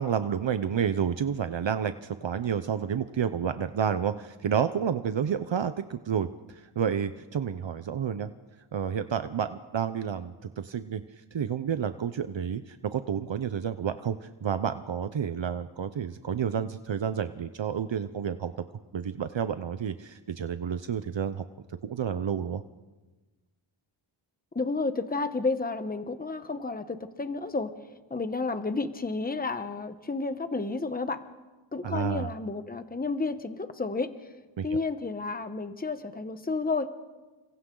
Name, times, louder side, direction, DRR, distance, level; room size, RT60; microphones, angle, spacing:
voice 1, 0.0-8.3 8.7-11.0 11.3-18.5 18.9-21.4 21.8-22.6 31.8-32.3 34.6-34.7, right 8 dB, 65° right, 10 dB, 0.8 m, -30 dB
voice 2, 24.5-27.7 28.1-31.2 31.7-34.1 34.6-36.9, left 3 dB, 20° left, 9 dB, 1.1 m, -31 dB
30.0 x 26.0 x 3.9 m, 1.2 s
wide cardioid pair, 105°, 49 cm